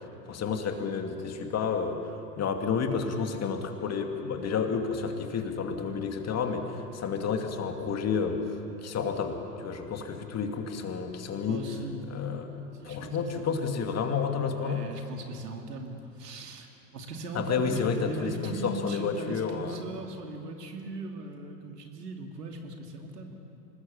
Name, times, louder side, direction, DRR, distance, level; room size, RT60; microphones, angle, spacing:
voice 1, 0.3-8.4 8.8-11.7 12.1-14.8 17.3-19.8, left 6 dB, 30° left, 4 dB, 2.5 m, -30 dB
voice 2, 11.5-12.1 12.7-14.0 14.6-16.7 16.9-23.4, right 2 dB, 80° right, 3 dB, 2.8 m, -39 dB
26.0 x 20.5 x 7.2 m, 2.9 s
hypercardioid pair, 85°, 48 cm